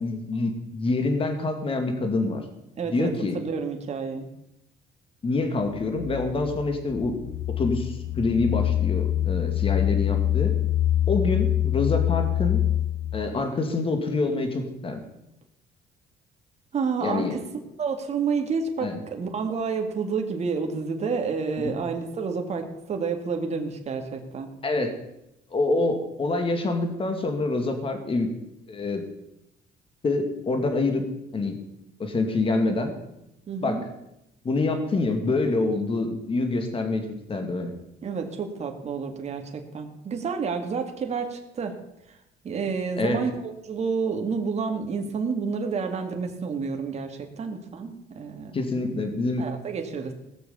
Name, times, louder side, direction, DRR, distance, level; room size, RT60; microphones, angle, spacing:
voice 1, 0.0-2.4 2.9-3.4 5.2-7.1 7.6-10.5 11.1-12.6 13.1-15.0 17.0-17.3 18.8-19.0 21.6-21.7 24.6-24.9 25.5-28.3 28.7-29.0 30.0-31.0 31.3-31.6 32.0-32.9 33.6-33.8 34.4-37.0 37.3-37.7 43.0-43.2 48.5-49.4, left 3 dB, 30° left, 6 dB, 2.3 m, -26 dB
voice 2, 2.8-4.3 16.7-17.4 17.8-24.5 33.5-33.8 38.0-41.8 42.1-42.2 42.4-48.8 49.4-50.1, right 5 dB, 40° right, 4 dB, 2.0 m, -29 dB
sound 1, 5.6-13.4, left 12 dB, 50° left, 0.5 m, -25 dB
17.5 x 6.9 x 6.9 m, 0.85 s
cardioid pair, 110°, 17 cm